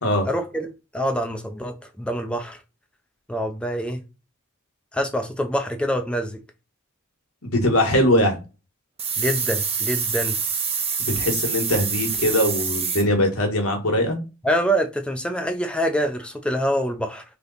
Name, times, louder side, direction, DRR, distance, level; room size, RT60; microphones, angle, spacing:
voice 1, 0.3-2.6 3.3-4.0 4.9-6.4 9.2-10.4 14.4-17.2, equal, 5° left, 0.4 m, -25 dB
voice 2, 7.4-8.4 11.1-14.2, left 1 dB, 85° left, 1.3 m, -21 dB
sound 1, 9.0-13.0, right 6 dB, 30° right, 0.8 m, -26 dB
3.4 x 2.9 x 3.9 m
head